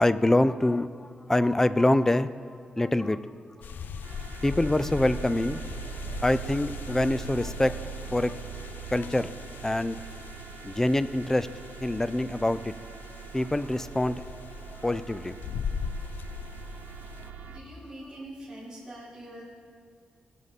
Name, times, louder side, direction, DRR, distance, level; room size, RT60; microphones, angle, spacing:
voice 1, 0.0-3.2 4.4-5.6 6.1-8.4 8.9-9.3 9.6-10.0 10.6-11.5 11.8-12.7 13.3-14.2 14.7-15.4, left 1 dB, 15° left, 14 dB, 0.4 m, -25 dB
sound 1, 3.6-17.3, left 7 dB, 80° left, 0.4 m, -40 dB
sound 2, 3.9-17.6, right 6 dB, 85° right, 0.8 m, -42 dB
voice 2, 17.5-19.4, right 1 dB, 15° right, -11 dB, 3.9 m, -43 dB
20.5 x 7.6 x 4.1 m, 2.1 s
wide cardioid pair, 110°, 3 cm